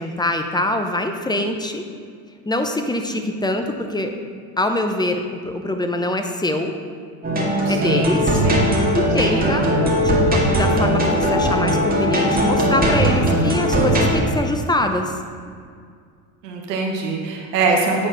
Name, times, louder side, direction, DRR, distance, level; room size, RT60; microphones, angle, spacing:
voice 1, 0.0-1.9 2.5-4.1 4.6-6.7 7.7-8.4 8.9-9.6 10.0-15.2, left 1 dB, 10° left, 5 dB, 0.6 m, -24 dB
sound 1, 7.2-14.2, equal, 20° right, 2.0 m, -19 dB
voice 2, 7.6-8.1 8.4-8.6 9.2-9.8 16.4-18.1, right 4 dB, 85° right, -1 dB, 1.2 m, -23 dB
8.7 x 4.1 x 4.9 m, 2.1 s
hypercardioid pair, 75°, 48 cm